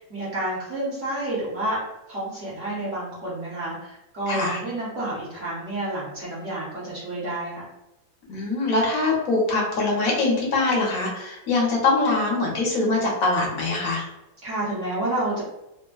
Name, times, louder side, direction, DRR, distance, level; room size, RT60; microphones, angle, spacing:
voice 1, 0.0-1.8 2.1-7.7 14.4-15.4, right 1 dB, 50° right, -8 dB, 1.1 m, -29 dB
voice 2, 4.3-4.6 8.3-14.1, left 3 dB, 60° left, -3 dB, 1.1 m, -23 dB
3.3 x 2.1 x 2.2 m, 0.91 s
omnidirectional pair, 2.0 m